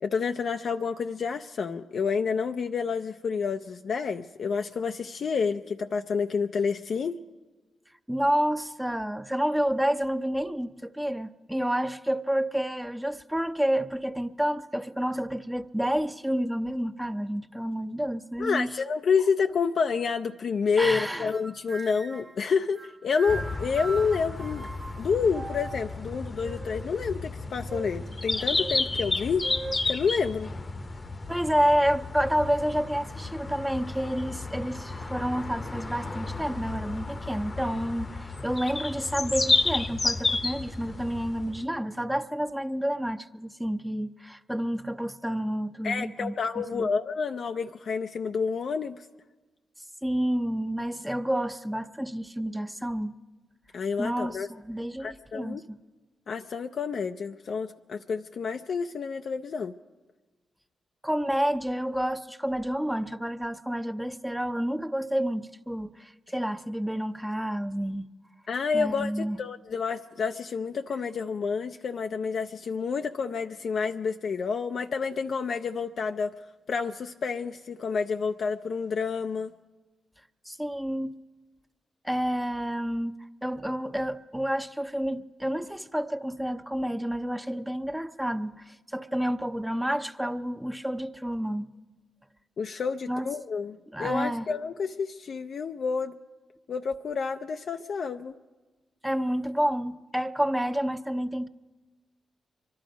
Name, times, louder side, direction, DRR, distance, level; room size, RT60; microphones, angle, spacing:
voice 1, 0.0-7.2 18.4-24.7 25.0-29.5 29.9-30.5 45.8-49.1 53.7-54.5 55.0-55.6 56.3-59.7 68.5-76.3 76.7-79.5 92.6-96.2 96.7-98.4, left 5 dB, 65° left, 0.4 m, -29 dB
voice 2, 8.1-18.8 20.8-21.3 31.3-46.9 50.0-53.1 54.0-55.8 61.0-68.1 68.7-69.4 80.5-81.2 82.0-83.1 83.4-91.7 93.1-93.3 93.9-94.5 99.0-101.5, equal, 5° right, 0.7 m, -29 dB
sound 1, 21.3-22.4 22.7-25.9 26.4-27.0 27.7-28.0 28.6-28.8 29.4-29.8, right 3 dB, 30° right, 0.9 m, -40 dB
sound 2, 23.3-41.7, left 3 dB, 35° left, 0.8 m, -32 dB
24.0 x 11.5 x 5.2 m
supercardioid pair, 45°, 0 cm